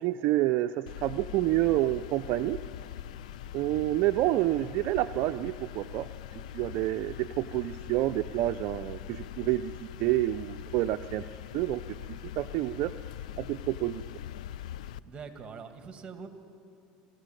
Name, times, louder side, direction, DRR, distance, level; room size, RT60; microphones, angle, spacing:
voice 1, 0.0-2.6 3.5-6.1 6.3-9.7 10.0-11.2 11.5-12.9 13.4-14.0, right 15 dB, 60° right, 10 dB, 0.5 m, -28 dB
sound 1, 0.9-15.0, left 11 dB, 85° left, 0.5 m, -42 dB
voice 2, 3.5-3.9 15.0-16.3, right 5 dB, 25° right, 7 dB, 2.2 m, -44 dB
23.5 x 13.5 x 9.1 m, 2.6 s
supercardioid pair, 100°, 4 cm